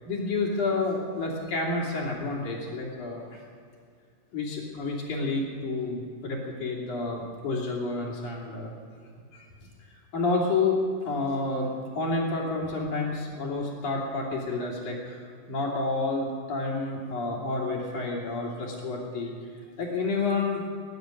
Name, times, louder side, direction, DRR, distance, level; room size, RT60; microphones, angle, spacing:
voice 1, 0.1-3.4 4.3-8.7 9.3-9.5 9.8-15.2 15.5-19.3 19.8-20.6, left 3 dB, 65° left, -2 dB, 4.3 m, -29 dB
22.0 x 10.0 x 6.5 m, 2.2 s
omnidirectional pair, 3.9 m